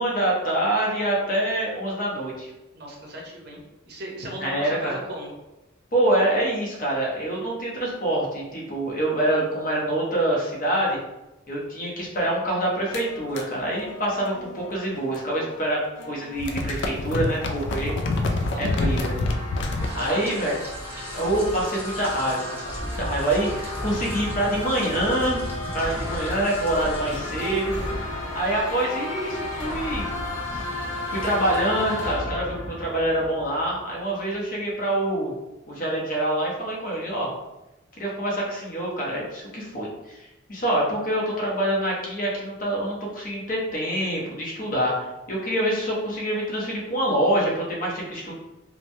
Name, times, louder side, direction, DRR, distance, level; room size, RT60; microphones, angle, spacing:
voice 1, 0.0-2.5 4.4-5.0 5.9-11.0 11.5-18.0 18.6-19.2 19.9-20.6 21.1-25.4 25.7-27.7 28.3-30.1 30.5-30.7 31.1-35.3 35.7-37.3 38.0-40.2 40.5-48.3, right 1 dB, 45° left, -4 dB, 0.7 m, -26 dB
voice 2, 2.7-3.6 3.8-5.3 18.3-19.2 19.8-20.7, equal, 50° right, -1 dB, 0.7 m, -37 dB
sound 1, 12.9-15.6 15.8-19.9, left 2 dB, 60° left, 0.3 m, -28 dB
sound 2, 17.0-33.9, left 2 dB, 85° left, 0.7 m, -34 dB
Rain, 19.8-31.6, equal, 10° right, 0.4 m, -36 dB
3.0 x 2.1 x 2.6 m, 0.99 s
head